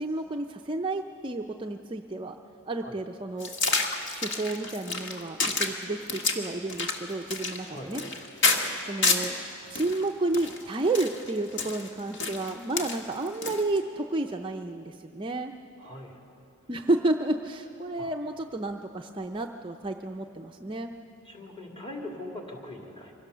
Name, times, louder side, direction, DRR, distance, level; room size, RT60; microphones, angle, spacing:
voice 1, 0.0-2.4 2.7-3.5 4.1-8.0 8.4-8.5 8.9-9.4 9.7-15.5 16.7-20.9, right 2 dB, 20° right, 3 dB, 0.5 m, -31 dB
sound 1, 3.4-9.4 9.8-13.8, left 3 dB, 55° left, 1.5 m, -29 dB
voice 2, 15.8-16.2 18.0-18.1 21.3-23.1, left 1 dB, 25° left, 0 dB, 2.3 m, -41 dB
24.0 x 17.0 x 6.7 m, 2.7 s
head